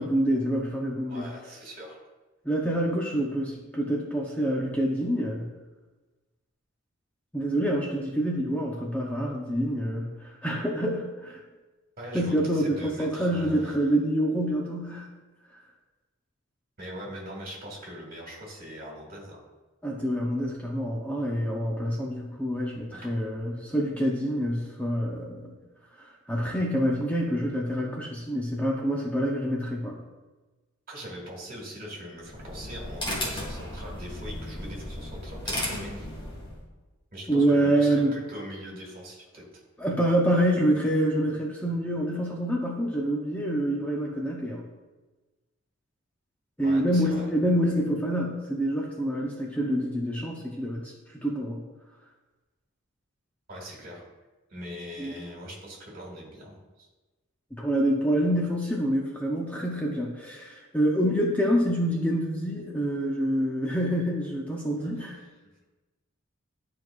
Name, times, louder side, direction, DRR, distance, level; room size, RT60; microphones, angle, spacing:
voice 1, 0.0-1.3 2.4-5.5 7.3-11.4 12.1-15.1 19.8-25.5 26.0-30.0 37.3-38.2 39.8-44.6 46.6-51.6 55.0-55.1 57.6-65.2, right 1 dB, 5° left, -2 dB, 0.7 m, -27 dB
voice 2, 1.1-2.0 12.0-13.7 16.8-19.4 22.9-23.1 30.9-36.1 37.1-39.4 46.6-47.3 53.5-54.0 54.5-56.9 64.8-64.9, equal, 45° right, -2 dB, 2.1 m, -41 dB
sound 1, 32.2-36.6, left 1 dB, 25° left, 1.9 m, -35 dB
11.5 x 4.7 x 2.4 m, 1.2 s
head